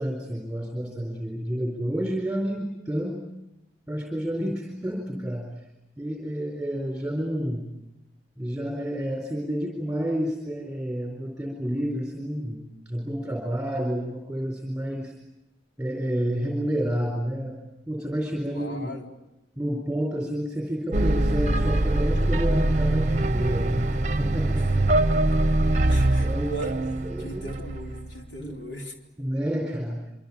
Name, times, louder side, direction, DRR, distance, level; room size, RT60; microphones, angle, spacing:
voice 1, 0.0-3.2 3.9-5.5 6.0-7.6 8.4-15.1 15.8-17.6 17.9-18.9 19.6-23.9 24.2-25.3 25.8-26.6 27.0-27.5 28.4-28.6 29.2-30.0, equal, 5° right, 1 dB, 4.2 m, -30 dB
voice 2, 18.5-19.1 25.9-28.9, right 2 dB, 65° left, 1 dB, 4.0 m, -38 dB
sound 1, 20.9-28.2, right 1 dB, 40° right, 1.0 m, -23 dB
26.5 x 24.5 x 8.7 m, 0.93 s
head